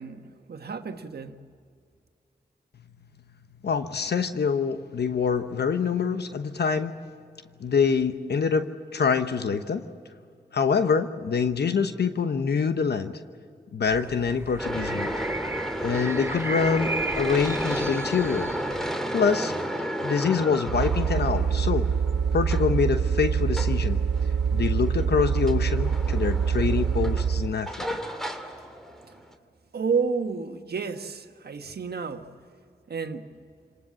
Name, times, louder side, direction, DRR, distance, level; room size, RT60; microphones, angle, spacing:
voice 1, 0.0-1.4 29.0-29.1 29.7-32.3 32.9-33.4, right 5 dB, 70° right, 1.4 m, -31 dB
voice 2, 3.6-6.9 7.6-9.8 10.5-13.2 13.7-15.1 15.8-18.5 19.1-19.5 20.0-21.9 22.3-24.0 24.5-28.0, left 5 dB, 75° left, 1.0 m, -25 dB
sound 1, 13.9-18.9, right 2 dB, 15° right, 0.6 m, -36 dB
sound 2, 14.6-29.3, equal, ahead, 2.6 m, -33 dB
sound 3, 20.7-27.6, right 6 dB, 85° right, 0.6 m, -25 dB
27.5 x 19.0 x 7.5 m
cardioid pair, 40°, 17 cm